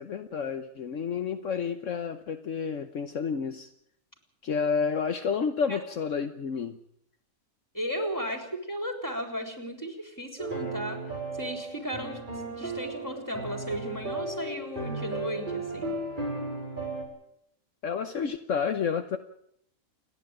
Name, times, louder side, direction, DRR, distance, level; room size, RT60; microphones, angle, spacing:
voice 1, 0.0-3.7 4.4-6.8 17.8-19.2, left 6 dB, 65° left, 7 dB, 1.3 m, -30 dB
voice 2, 7.7-11.0 11.4-12.2 12.5-15.9, equal, 15° left, 5 dB, 3.9 m, -35 dB
sound 1, 10.4-17.1, right 2 dB, 35° right, 5.5 m, -35 dB
29.0 x 10.5 x 9.0 m, 0.72 s
omnidirectional pair, 1.4 m